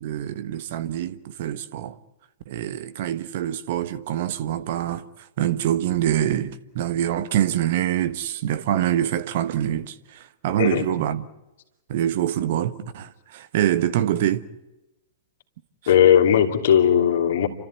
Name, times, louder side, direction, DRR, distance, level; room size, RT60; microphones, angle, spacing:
voice 1, 0.0-1.9 2.5-5.0 5.4-11.3 11.9-14.4 15.8-15.9, right 11 dB, 55° right, 1.4 m, -25 dB
voice 2, 15.9-17.5, left 9 dB, 60° left, 2.8 m, -17 dB
29.5 x 13.5 x 9.6 m
figure-of-eight pair, 105°, 0 cm